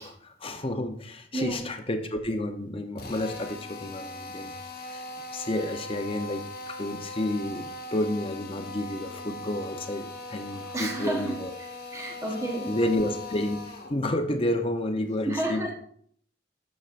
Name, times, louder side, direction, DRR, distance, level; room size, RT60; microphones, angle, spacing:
voice 1, 0.0-5.0 5.3-11.5 12.1-12.2 12.7-13.6 13.9-15.7, left 1 dB, 30° left, 6 dB, 0.6 m, -30 dB
Drill, 3.0-14.0, left 2 dB, 50° left, 1.2 m, -40 dB
voice 2, 10.7-11.3 11.9-12.8 15.2-15.7, right 1 dB, 15° right, 0 dB, 1.0 m, -30 dB
10.0 x 6.5 x 2.5 m, 0.63 s
head